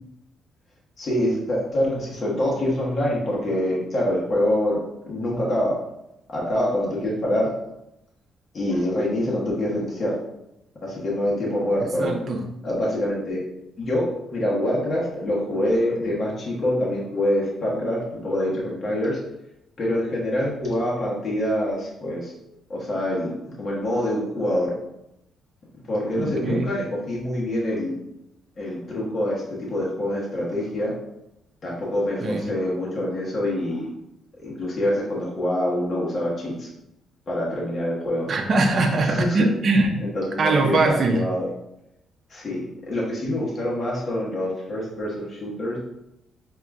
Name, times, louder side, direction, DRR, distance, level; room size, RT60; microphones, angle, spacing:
voice 1, 1.0-5.8 6.3-7.5 8.5-10.2 10.8-12.2 12.6-13.4 13.8-19.2 19.8-22.3 22.7-24.7 25.9-27.9 28.6-30.9 31.6-33.9 34.4-36.7 37.3-38.3 39.0-39.4 40.0-41.5 42.3-45.8, left 1 dB, 45° left, -4 dB, 1.3 m, -25 dB
voice 2, 12.0-12.4 26.2-26.7 32.2-32.4 38.3-40.0 40.4-41.2, right 3 dB, 50° right, 3 dB, 0.7 m, -21 dB
5.0 x 2.9 x 2.4 m, 0.85 s
cardioid pair, 90°, 0 cm